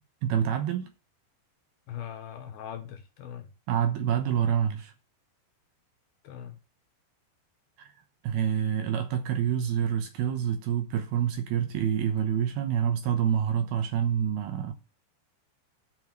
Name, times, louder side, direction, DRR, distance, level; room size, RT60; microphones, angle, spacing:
voice 1, 0.2-0.9 3.7-4.9 7.8-7.9 8.2-14.7, right 9 dB, 70° right, 2.6 m, -27 dB
voice 2, 1.9-3.5 4.3-4.6 6.2-6.6, left 9 dB, 70° left, 2.6 m, -41 dB
9.4 x 5.5 x 7.8 m
omnidirectional pair, 5.2 m